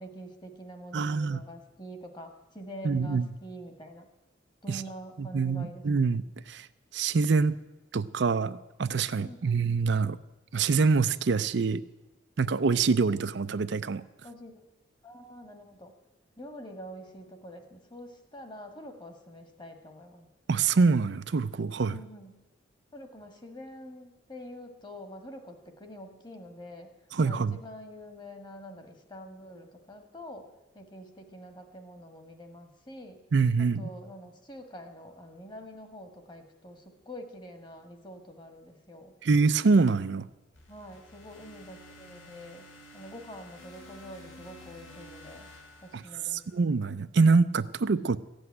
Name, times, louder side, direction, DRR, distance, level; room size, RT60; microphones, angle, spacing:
voice 1, 0.0-4.1 4.6-5.9 9.2-9.7 14.2-14.6 15.0-15.9 16.4-20.3 21.9-22.4 22.9-26.9 27.2-33.2 33.6-39.1 40.7-45.5 45.8-46.4, equal, 25° left, 6 dB, 1.6 m, -46 dB
voice 2, 0.9-1.4 2.8-3.3 4.7-4.8 5.2-6.7 6.9-7.6 7.9-10.2 10.5-11.8 12.4-14.0 20.5-22.0 27.1-27.5 33.3-33.9 39.2-40.3 46.3-48.2, right 4 dB, 60° right, 13 dB, 0.5 m, -25 dB
sound 1, 40.5-46.7, left 1 dB, 90° left, 3.0 m, -51 dB
15.0 x 8.0 x 9.6 m, 1.0 s
head